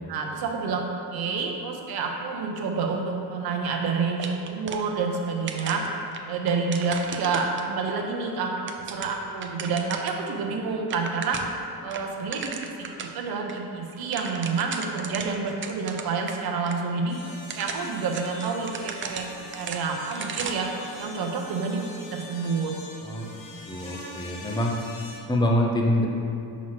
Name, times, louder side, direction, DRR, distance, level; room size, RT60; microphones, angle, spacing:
voice 1, 0.1-0.8 1.1-5.8 6.3-11.4 11.8-17.2 17.5-20.7 21.0-22.7 23.2-23.3, right 4 dB, 75° right, 1 dB, 0.9 m, -29 dB
sound 1, 4.2-5.2 5.5-7.9 8.4-10.2 10.5-10.6 10.8-11.6 11.9-13.2 13.5-13.6 13.9-16.4 16.7-16.8 17.3-20.7, right 6 dB, 35° right, 0.4 m, -36 dB
sound 2, 17.1-25.2, left 2 dB, 60° left, 1.1 m, -44 dB
voice 2, 23.7-24.7 25.3-26.1, left 1 dB, 10° left, 0 dB, 0.6 m, -25 dB
6.0 x 3.1 x 5.8 m, 3.0 s
cardioid pair, 125°, 38 cm